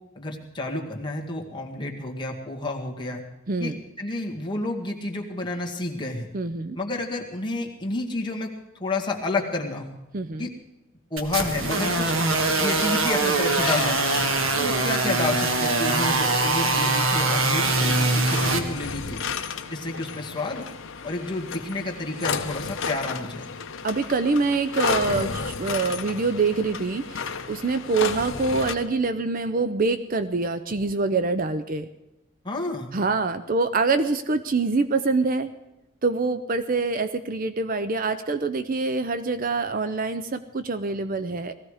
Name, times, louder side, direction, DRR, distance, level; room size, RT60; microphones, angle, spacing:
voice 1, 0.2-3.2 3.6-6.3 6.8-8.5 8.8-10.0 10.4-10.5 11.1-12.1 12.6-14.3 14.6-19.2 19.7-20.6 21.0-23.4 32.4-32.9, left 2 dB, 20° left, 0 dB, 1.8 m, -30 dB
voice 2, 3.5-3.8 6.3-6.8 10.1-10.5 23.8-31.9 32.9-35.5 36.0-41.5, right 3 dB, 40° right, 11 dB, 0.5 m, -25 dB
sound 1, 11.2-18.6, right 3 dB, 70° right, 1.6 m, -23 dB
sound 2, 13.6-28.7, left 5 dB, 65° left, 0.9 m, -33 dB
19.0 x 15.0 x 4.9 m, 0.94 s
head